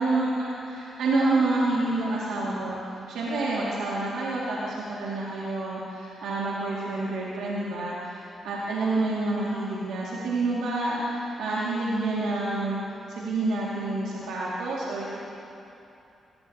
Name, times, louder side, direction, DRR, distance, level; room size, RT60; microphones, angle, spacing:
voice 1, 0.0-2.8 3.1-12.8 13.1-15.2, right 2 dB, 80° right, -6 dB, 2.1 m, -28 dB
21.5 x 15.0 x 2.8 m, 2.8 s
supercardioid pair, 50°, 0 cm